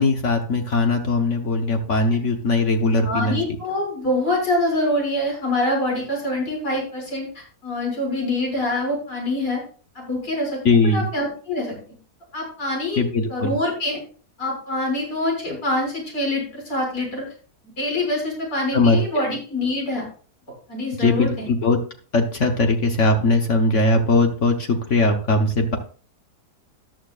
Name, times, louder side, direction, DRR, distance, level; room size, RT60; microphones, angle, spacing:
voice 1, 0.0-3.4 10.6-11.1 13.0-13.5 18.7-19.0 21.0-21.8 22.1-25.8, left 2 dB, 55° left, 4 dB, 1.4 m, -20 dB
voice 2, 3.0-9.6 10.0-11.7 12.3-13.0 13.3-14.0 14.4-17.3 17.6-20.1 20.7-21.5, left 1 dB, 80° left, -1 dB, 7.1 m, -25 dB
14.0 x 11.5 x 2.5 m, 0.40 s
omnidirectional pair, 1.6 m